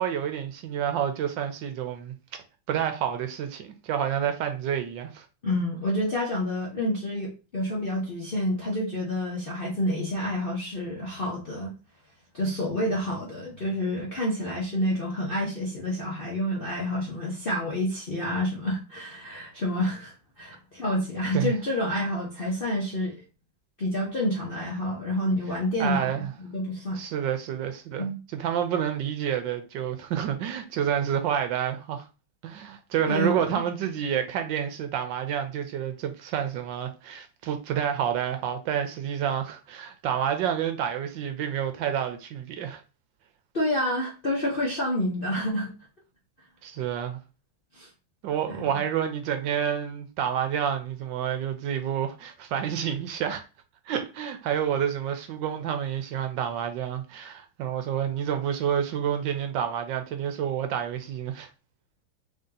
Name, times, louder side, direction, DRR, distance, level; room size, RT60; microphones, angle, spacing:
voice 1, 0.0-2.1 2.7-5.2 21.3-21.5 25.8-26.3 27.0-28.1 28.3-32.1 32.4-42.8 46.6-47.2 48.2-53.4 53.9-61.5, right 9 dB, 75° right, 1.2 m, -29 dB
voice 2, 5.4-11.7 12.3-23.2 23.8-27.0 28.0-28.2 33.1-33.6 43.5-45.7 47.7-47.9 48.6-48.7, left 1 dB, 45° left, 0.7 m, -28 dB
3.5 x 2.7 x 3.7 m
omnidirectional pair, 2.2 m